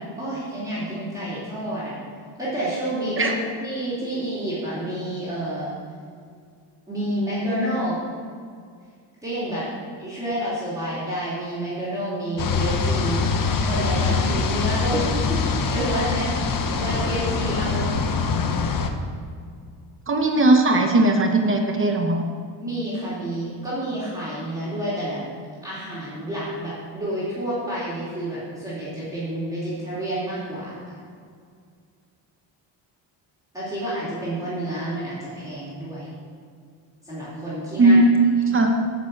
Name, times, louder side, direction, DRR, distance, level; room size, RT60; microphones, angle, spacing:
voice 1, 0.0-2.0 2.4-5.7 6.9-8.0 9.2-9.7 10.0-13.2 13.6-16.3 16.7-17.9 22.6-25.2 25.6-31.0 33.5-36.1 37.0-38.0, right 1 dB, 5° right, -10 dB, 2.8 m, -29 dB
sound 1, 12.4-18.9, left 4 dB, 45° left, 0.8 m, -24 dB
voice 2, 20.1-22.2 37.8-38.8, right 2 dB, 25° right, 3 dB, 0.8 m, -18 dB
9.4 x 6.8 x 7.5 m, 2.2 s
cardioid pair, 180°, 47 cm